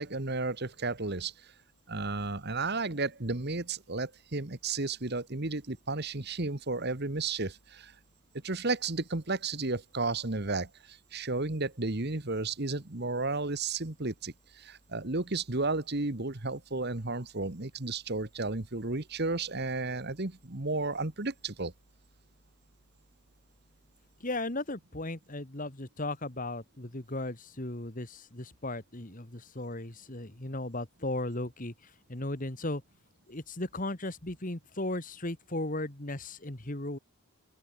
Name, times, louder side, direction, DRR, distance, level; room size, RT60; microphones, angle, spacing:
voice 1, 0.0-1.5 1.9-7.9 8.4-21.7, right 3 dB, 50° right, 1.5 m, -33 dB
voice 2, 24.2-31.7 32.1-32.8 33.3-37.0, left 2 dB, 35° left, 2.1 m, -36 dB
open air
head